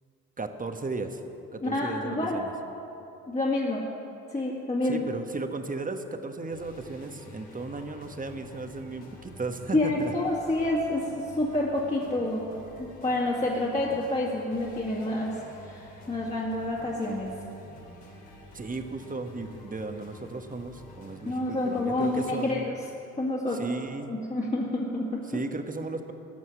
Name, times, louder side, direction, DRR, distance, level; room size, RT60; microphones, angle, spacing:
voice 1, 0.4-1.2 1.5-2.5 4.8-10.1 18.5-22.7 23.5-24.1 25.3-26.1, right 3 dB, 25° right, 7 dB, 1.3 m, -35 dB
voice 2, 1.6-2.4 3.3-3.8 4.3-5.1 9.7-12.5 12.8-17.3 21.2-22.7 23.2-23.6 24.0-25.4, left 2 dB, 20° left, -4 dB, 2.2 m, -28 dB
sound 1, 6.5-22.5, left 1 dB, 75° left, 3.1 m, -49 dB
15.0 x 6.3 x 9.7 m, 2.9 s
hypercardioid pair, 60°, 34 cm